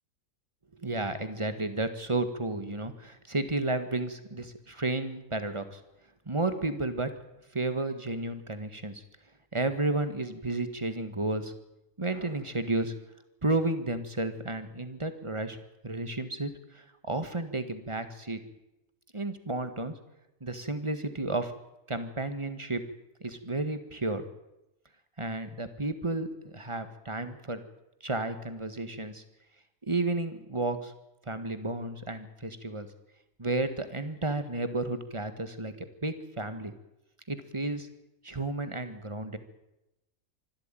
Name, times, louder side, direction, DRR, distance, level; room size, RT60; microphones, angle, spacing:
voice 1, 0.7-5.8 6.3-7.2 7.5-9.0 9.5-11.5 12.0-13.0 13.4-15.6 15.8-18.4 19.1-19.9 20.4-21.5 21.9-22.9 23.2-24.3 25.2-27.6 28.0-29.2 29.8-30.9 31.3-32.9 33.4-36.7 37.3-37.9 38.2-39.4, right 2 dB, 20° right, 10 dB, 1.8 m, -32 dB
25.0 x 13.0 x 9.2 m, 0.91 s
omnidirectional pair, 1.5 m